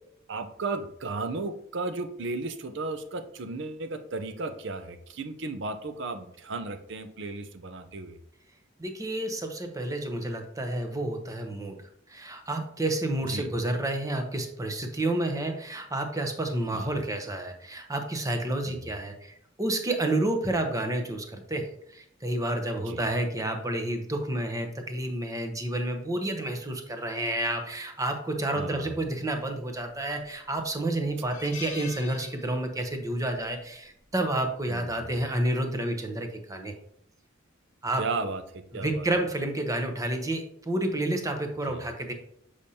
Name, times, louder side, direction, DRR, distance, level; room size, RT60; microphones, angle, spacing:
voice 1, 0.3-8.2 13.3-13.5 16.7-17.0 18.7-18.9 22.8-23.0 28.5-28.9 34.7-34.9 38.0-39.1 41.7-41.8, right 3 dB, 65° right, 9 dB, 0.6 m, -35 dB
voice 2, 8.8-11.8 12.1-36.7 37.8-38.0 38.7-42.1, right 1 dB, 15° right, 5 dB, 0.8 m, -30 dB
sound 1, 29.9-30.3 30.6-30.7 31.1-33.0 33.2-33.5 34.7-35.0, left 5 dB, 40° left, 1.2 m, -44 dB
6.9 x 4.9 x 2.8 m, 0.70 s
head